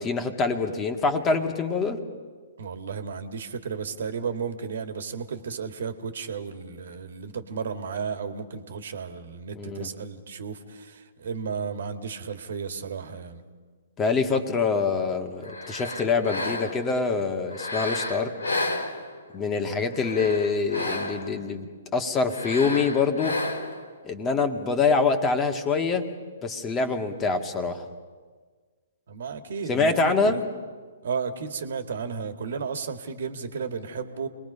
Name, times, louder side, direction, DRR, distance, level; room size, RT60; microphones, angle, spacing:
voice 1, 0.0-2.0 9.6-9.9 14.0-18.3 19.3-23.4 24.0-26.1 26.4-27.9 29.7-30.4, left 4 dB, 20° left, 6 dB, 2.0 m, -25 dB
voice 2, 2.6-13.4 19.7-19.8 29.1-30.4 31.0-34.3, right 5 dB, 60° right, 8 dB, 2.0 m, -33 dB
sound 1, 15.4-16.9 17.5-19.4 19.9-21.4 22.3-23.9, left 2 dB, 80° left, 3.5 m, -32 dB
29.5 x 21.5 x 5.6 m, 1.5 s
figure-of-eight pair, 125°, 0 cm